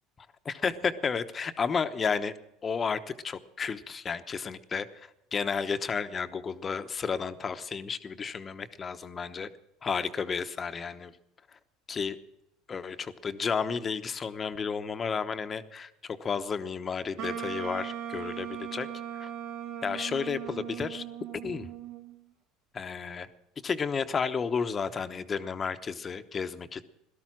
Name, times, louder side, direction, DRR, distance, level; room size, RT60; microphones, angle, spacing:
voice 1, 0.4-2.4 2.6-3.0 3.2-9.5 9.8-11.1 11.5-11.6 11.9-12.2 12.7-18.9 19.2-19.3 19.8-21.0 21.3-21.7 22.7-23.3 23.6-26.8, left 5 dB, 30° left, 10 dB, 1.0 m, -32 dB
Wind instrument woodwind instrument, 17.2-22.2, right 9 dB, 70° right, 2.4 m, -38 dB
17.5 x 13.0 x 6.1 m, 0.84 s
supercardioid pair, 115°, 0 cm